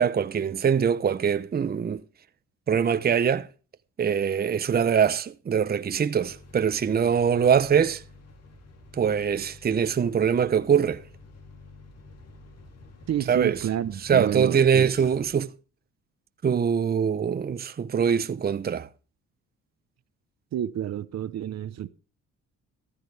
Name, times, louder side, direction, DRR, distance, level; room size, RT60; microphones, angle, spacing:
voice 1, 0.0-2.0 2.7-3.5 4.0-8.0 9.0-11.0 13.3-13.6 14.0-15.5 16.4-18.9, right 7 dB, 30° right, 0.8 m, -23 dB
sound 1, 6.1-15.3, left 2 dB, 55° left, 3.0 m, -49 dB
voice 2, 13.1-14.9 20.5-21.9, right 11 dB, 60° right, 0.9 m, -29 dB
14.5 x 13.5 x 3.4 m
cardioid pair, 90°, 30 cm